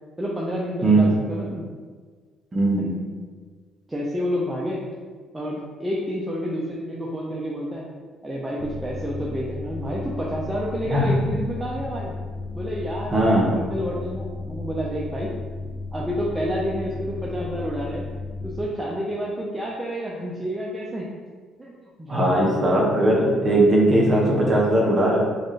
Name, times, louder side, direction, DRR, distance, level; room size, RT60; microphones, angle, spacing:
voice 1, 0.2-1.6 2.8-2.9 3.9-4.8 5.3-7.9 8.2-12.1 12.5-15.3 15.9-18.0 18.4-21.1 21.6-22.5, equal, 10° right, -5 dB, 0.5 m, -29 dB
voice 2, 0.8-1.1 2.5-3.0 10.9-11.1 13.1-13.5 22.1-25.2, right 1 dB, 30° right, -4 dB, 1.0 m, -19 dB
sound 1, 8.6-18.6, left 3 dB, 70° left, 0.6 m, -34 dB
4.1 x 2.5 x 3.2 m, 1.5 s
cardioid pair, 120°, 0 cm